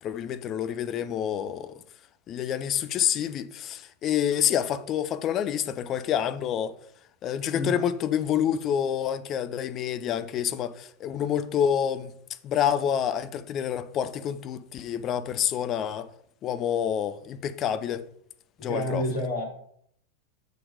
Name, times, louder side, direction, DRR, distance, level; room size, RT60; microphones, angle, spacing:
voice 1, 0.0-1.8 2.3-6.7 7.2-12.1 12.4-16.1 16.4-18.1 18.6-19.0, left 9 dB, 30° left, 0.5 m, -28 dB
voice 2, 18.6-19.4, left 1 dB, 55° left, 3.2 m, -29 dB
6.5 x 4.3 x 4.9 m
figure-of-eight pair, 90°, 0 cm